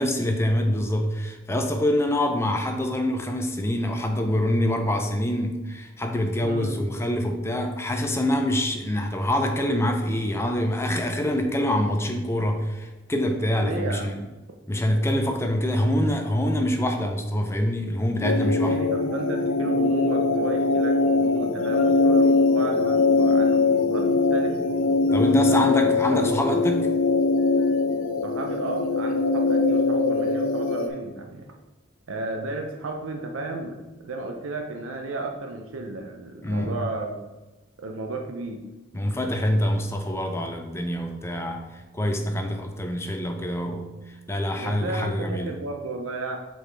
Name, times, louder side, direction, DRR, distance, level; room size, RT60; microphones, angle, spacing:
voice 1, 0.0-14.2 14.7-18.8 25.1-26.9 36.4-36.7 38.9-45.6, left 1 dB, 10° left, 4 dB, 0.4 m, -25 dB
voice 2, 6.4-6.8 13.6-14.2 18.5-24.7 25.5-26.3 28.2-31.5 32.1-33.8 34.0-37.2 37.8-38.7 44.5-46.4, right 2 dB, 70° right, 3 dB, 0.6 m, -33 dB
sound 1, 18.2-30.9, left 3 dB, 70° left, 0.6 m, -22 dB
5.9 x 5.0 x 3.3 m, 1.1 s
head